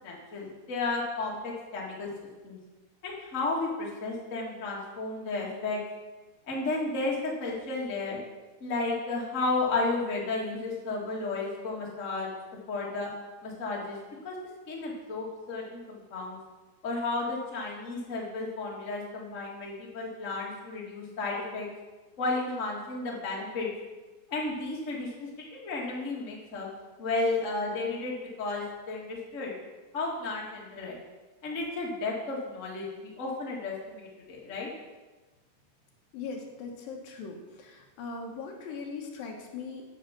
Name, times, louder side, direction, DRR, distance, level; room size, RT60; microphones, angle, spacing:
voice 1, 0.0-2.1 2.4-2.6 3.0-5.8 6.4-8.2 8.6-12.3 12.7-13.1 13.4-14.0 14.2-14.3 14.7-16.4 16.8-21.7 22.2-23.7 24.3-26.7 27.0-29.5 29.9-31.0 31.4-34.7, left 3 dB, 25° left, -3 dB, 1.8 m, -33 dB
voice 2, 36.1-39.9, left 4 dB, 75° left, 1 dB, 2.9 m, -40 dB
9.2 x 8.0 x 5.9 m, 1.2 s
omnidirectional pair, 4.1 m